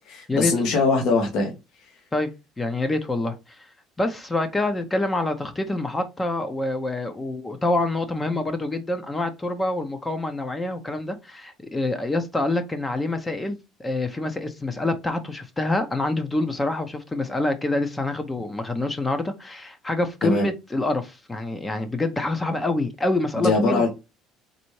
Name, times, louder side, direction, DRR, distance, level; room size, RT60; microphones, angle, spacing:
voice 1, 0.1-1.5 20.2-20.5 23.3-23.9, left 3 dB, 60° left, 1.3 m, -21 dB
voice 2, 2.6-3.4 4.0-23.8, left 2 dB, 15° left, 0.7 m, -26 dB
4.1 x 3.3 x 3.1 m
cardioid pair, 145°, 0 cm